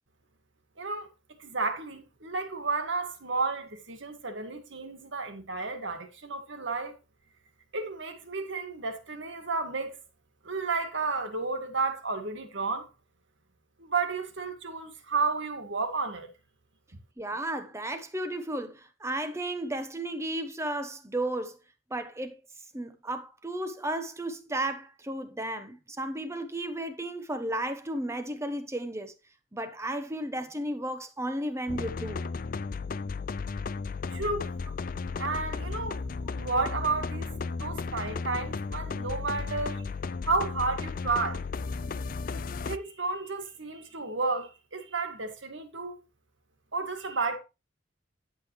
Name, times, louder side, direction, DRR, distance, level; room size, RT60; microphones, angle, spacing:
voice 1, 0.8-1.1 1.4-6.9 7.7-10.0 10.4-12.9 13.8-16.3 34.1-34.5 35.2-36.0 36.4-37.3 37.6-39.9 40.2-41.4 42.6-46.0 46.7-47.4, right 3 dB, 65° right, 1.9 m, -32 dB
voice 2, 17.2-21.6 21.9-22.4 22.7-29.1 29.5-32.2, right 1 dB, 15° right, 1.0 m, -34 dB
sound 1, 31.7-42.8, left 4 dB, 45° left, 0.4 m, -34 dB
10.5 x 7.8 x 3.2 m
head